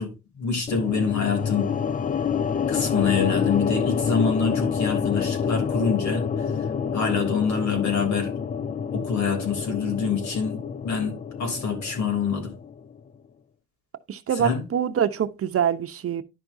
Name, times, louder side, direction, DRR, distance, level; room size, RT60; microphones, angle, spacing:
voice 1, 0.0-1.7 2.7-6.5 6.9-8.3 8.9-12.5 14.4-14.6, left 5 dB, 65° left, 3.2 m, -26 dB
sound 1, 0.7-12.9, left 7 dB, 25° left, 0.5 m, -28 dB
voice 2, 14.1-16.2, right 9 dB, 50° right, 0.8 m, -25 dB
11.0 x 5.9 x 2.7 m
cardioid pair, 90°, 30 cm